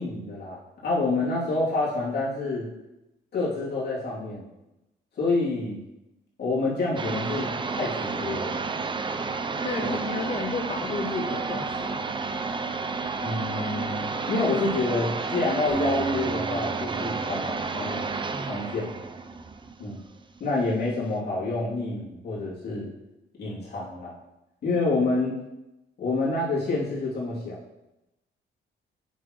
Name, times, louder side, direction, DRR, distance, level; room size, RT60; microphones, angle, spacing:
voice 1, 0.0-2.7 3.3-4.5 5.2-5.8 6.4-8.6 9.8-9.9 13.2-18.0 18.5-18.9 19.8-20.0 20.4-22.9 23.4-24.1 24.6-25.4 26.0-27.6, left 3 dB, 55° left, -8 dB, 3.0 m, -28 dB
sound 1, 7.0-20.4, right 4 dB, 25° right, 0.6 m, -31 dB
voice 2, 9.6-12.1, left 4 dB, 30° left, 5 dB, 0.6 m, -32 dB
Acoustic guitar, 15.7-19.3, right 4 dB, 45° right, 1.8 m, -35 dB
9.0 x 6.1 x 3.2 m, 0.95 s
cardioid pair, 90°, 20 cm